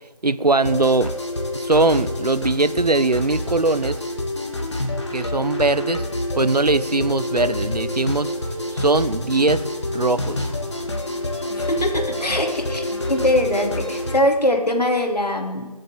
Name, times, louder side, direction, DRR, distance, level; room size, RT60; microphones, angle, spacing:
voice 1, 0.2-1.1 1.5-4.0 5.1-6.0 6.3-8.3 8.7-9.6 9.9-10.5, right 3 dB, 80° right, 15 dB, 1.0 m, -20 dB
sound 1, 0.6-14.2, left 1 dB, 45° left, 2.4 m, -27 dB
voice 2, 11.6-15.7, left 1 dB, 85° left, 3 dB, 3.2 m, -22 dB
23.0 x 8.0 x 7.7 m, 1.3 s
figure-of-eight pair, 170°, 20 cm